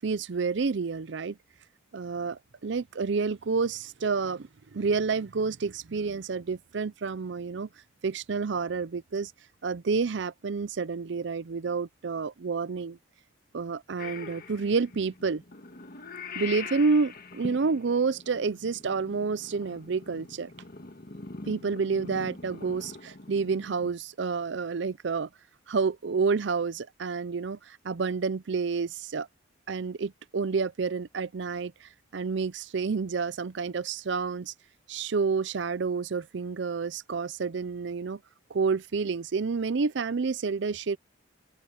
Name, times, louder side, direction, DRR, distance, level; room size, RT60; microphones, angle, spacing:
voice 1, 0.0-1.4 1.9-7.7 8.0-9.3 9.6-13.0 13.5-15.4 16.3-20.5 21.4-25.3 25.7-29.3 29.7-34.5 34.9-38.2 38.5-41.0, right 4 dB, 65° right, 0.5 m, -29 dB
Purr / Meow, 14.0-23.9, left 4 dB, 50° left, 1.6 m, -43 dB
head